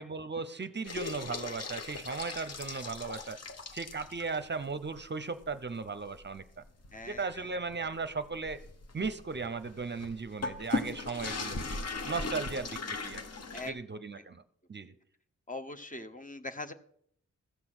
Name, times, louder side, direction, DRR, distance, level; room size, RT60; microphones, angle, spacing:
voice 1, 0.0-3.4 3.7-6.6 7.0-8.6 8.9-11.8 12.0-13.2 13.6-14.4 14.7-14.9, right 4 dB, 35° right, 12 dB, 0.7 m, -37 dB
sound 1, 0.8-4.4 4.9-5.0 5.4-5.5 6.0-13.7, left 3 dB, 55° left, 1.2 m, -38 dB
voice 2, 6.9-7.2 13.5-13.7 15.5-16.7, left 2 dB, 25° left, 8 dB, 1.0 m, -41 dB
15.0 x 6.1 x 6.0 m, 0.67 s
cardioid pair, 70°, 31 cm